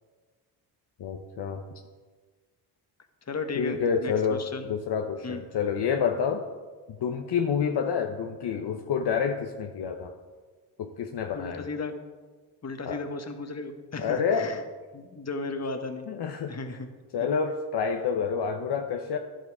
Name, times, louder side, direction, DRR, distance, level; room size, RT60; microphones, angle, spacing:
voice 1, 1.0-1.6 3.5-4.4 4.7-6.4 7.0-10.1 10.8-11.7 12.8-13.0 14.0-14.5 16.1-16.5 17.1-19.2, left 6 dB, 55° left, 4 dB, 1.0 m, -28 dB
voice 2, 3.3-4.7 5.2-5.4 11.3-11.9 12.6-14.6 14.9-16.1 16.5-16.9, left 3 dB, 35° left, 6 dB, 1.5 m, -35 dB
11.0 x 7.9 x 4.9 m, 1.4 s
supercardioid pair, 55°, 48 cm